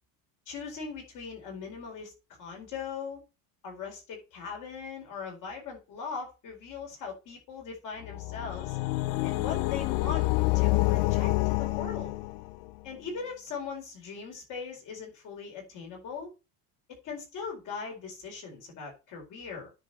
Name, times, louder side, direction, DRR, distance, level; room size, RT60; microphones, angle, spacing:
voice 1, 0.5-3.2 3.6-8.8 9.2-10.3 10.5-12.1 12.8-16.3 17.0-19.7, left 5 dB, 40° left, 1 dB, 4.6 m, -40 dB
sound 1, 8.0-12.7, left 21 dB, 85° left, 0.6 m, -28 dB
10.0 x 5.2 x 5.4 m, 0.29 s
cardioid pair, 160°, 45 cm